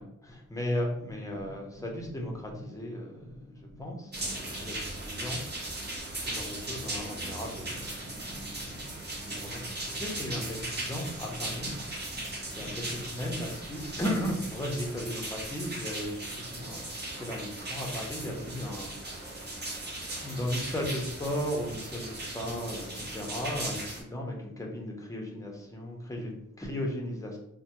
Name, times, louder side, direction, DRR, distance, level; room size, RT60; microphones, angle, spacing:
voice 1, 0.0-5.9 6.2-8.9 9.2-16.9 17.2-27.4, left 1 dB, 10° left, -1 dB, 0.7 m, -36 dB
sound 1, 4.1-24.0, right 1 dB, 30° right, 0.8 m, -38 dB
3.2 x 2.1 x 2.9 m, 0.77 s
wide cardioid pair, 75°, 34 cm